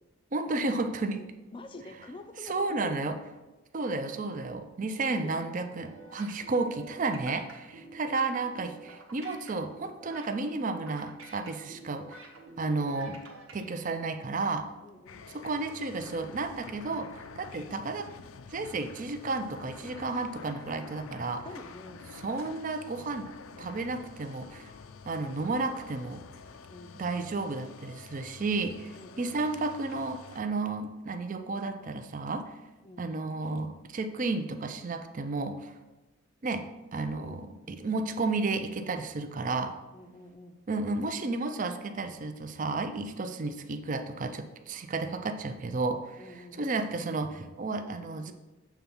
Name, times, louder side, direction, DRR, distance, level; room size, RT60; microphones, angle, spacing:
voice 1, 0.3-1.3 2.4-3.2 3.7-13.2 13.5-14.7 15.3-18.1 18.5-21.5 22.2-23.3 23.6-24.7 25.1-26.2 27.0-32.6 33.0-35.8 36.4-39.8 40.7-46.2 46.5-48.3, right 3 dB, 40° right, 8 dB, 0.4 m, -32 dB
voice 2, 1.5-3.1 5.0-5.5 14.8-15.3 21.4-22.1 26.7-27.0 28.9-29.4 32.8-33.1 37.1-37.5 39.9-40.6 46.2-46.6, left 2 dB, 25° left, 7 dB, 0.5 m, -47 dB
sound 1, 5.8-13.6, right 2 dB, 75° right, 1.1 m, -49 dB
sound 2, 15.1-30.4, left 5 dB, 80° left, 0.4 m, -48 dB
7.2 x 3.4 x 5.5 m, 1.1 s
head